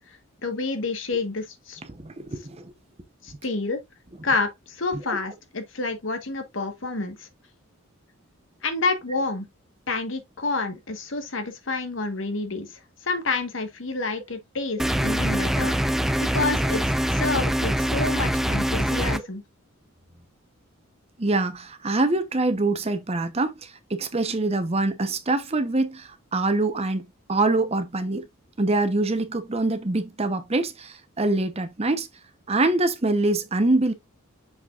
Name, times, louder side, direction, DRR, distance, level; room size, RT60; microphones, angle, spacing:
voice 1, 0.4-1.8 3.2-3.8 4.2-7.3 8.6-9.5 9.9-12.7 13.0-15.7 16.2-19.4, left 3 dB, 65° left, 1.3 m, -29 dB
voice 2, 1.9-2.7 5.1-5.2 21.2-28.3 28.6-32.1 32.5-33.9, right 2 dB, 30° right, 0.8 m, -24 dB
sound 1, 14.8-19.2, equal, ahead, 0.4 m, -24 dB
6.5 x 6.0 x 2.4 m
head